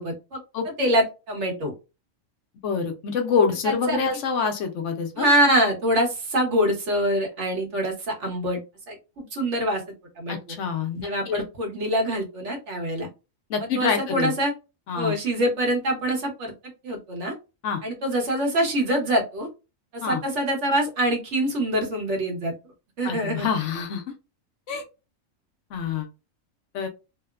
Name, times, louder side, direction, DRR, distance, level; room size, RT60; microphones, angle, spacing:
voice 1, 0.0-0.4 0.8-1.7 3.6-4.0 5.2-8.6 8.9-9.8 10.2-10.3 11.0-13.1 13.6-14.5 14.9-16.5 16.8-17.3 17.8-19.5 19.9-22.5 23.0-23.5, right 1 dB, 65° right, 1 dB, 1.2 m, -24 dB
voice 2, 2.6-5.3 10.3-11.4 13.5-14.3 14.9-15.1 17.6-17.8 20.0-20.2 23.0-24.0 24.7-24.8 25.7-26.1 26.7-26.9, left 6 dB, 70° left, 5 dB, 0.9 m, -26 dB
2.9 x 2.0 x 2.3 m, 0.28 s
omnidirectional pair, 1.4 m